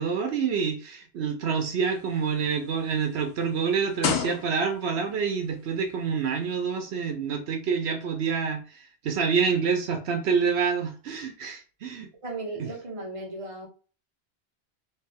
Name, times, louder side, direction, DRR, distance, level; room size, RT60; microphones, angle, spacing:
voice 1, 0.0-12.1 12.6-12.7, right 6 dB, 75° right, 0.9 m, -27 dB
sound 1, 1.8-5.0 5.8-6.0, left 7 dB, 80° left, 0.9 m, -32 dB
voice 2, 12.2-13.7, right 2 dB, 30° right, 1.0 m, -36 dB
3.4 x 2.7 x 3.4 m
omnidirectional pair, 1.1 m